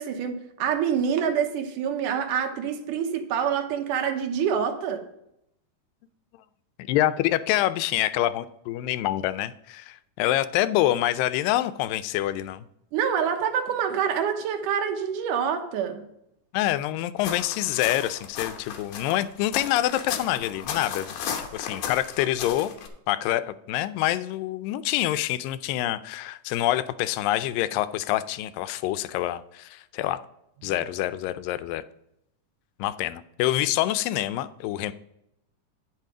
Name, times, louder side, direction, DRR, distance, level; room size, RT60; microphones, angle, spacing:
voice 1, 0.0-5.1 12.9-16.0, right 7 dB, 75° right, 2.4 m, -26 dB
voice 2, 6.9-12.7 16.5-22.7 23.1-23.4 23.7-30.2 30.6-31.8 32.8-34.9, left 14 dB, 90° left, 2.2 m, -26 dB
sound 1, 17.2-22.9, left 7 dB, 75° left, 2.4 m, -35 dB
9.2 x 5.7 x 4.8 m
omnidirectional pair, 3.8 m